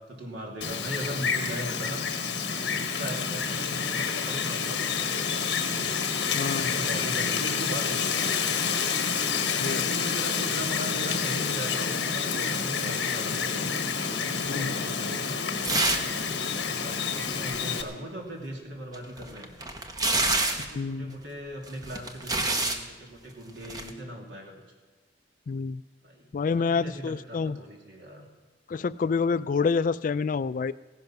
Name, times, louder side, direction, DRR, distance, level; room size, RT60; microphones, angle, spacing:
voice 1, 0.1-2.0 2.5-5.2 5.5-5.7 6.4-8.6 9.5-13.7 14.0-15.4 16.5-19.5 20.6-24.5 26.0-28.3, equal, 80° right, -1 dB, 3.0 m, -39 dB
Wind, 0.6-17.8, left 6 dB, 70° left, 1.2 m, -28 dB
voice 2, 6.3-6.7 9.6-9.9 14.5-14.8 20.7-21.2 25.5-25.8 26.3-27.6 28.7-30.7, left 5 dB, 45° left, 16 dB, 0.3 m, -28 dB
sound 1, 15.6-16.2 16.4-16.5 18.9-20.7 21.7-22.8 23.6-23.9, right 2 dB, 20° right, 1.0 m, -27 dB
16.0 x 10.5 x 5.9 m, 1.3 s
head